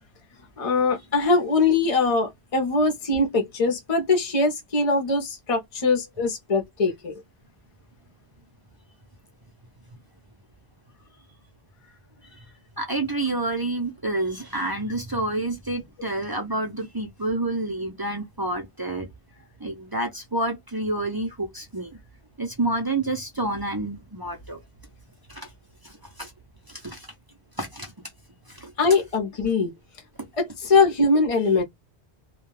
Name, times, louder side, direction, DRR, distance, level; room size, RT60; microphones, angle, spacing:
voice 1, 0.6-7.1 28.8-29.7 30.4-31.6, left 3 dB, 40° left, 0.7 m, -22 dB
voice 2, 12.8-19.1 19.6-22.0 22.4-24.6 25.3-25.5 25.8-26.3 26.7-27.1 27.6-27.9 28.5-28.7 30.2-30.3, right 2 dB, 30° right, 0.5 m, -29 dB
2.3 x 2.2 x 3.1 m
omnidirectional pair, 1.1 m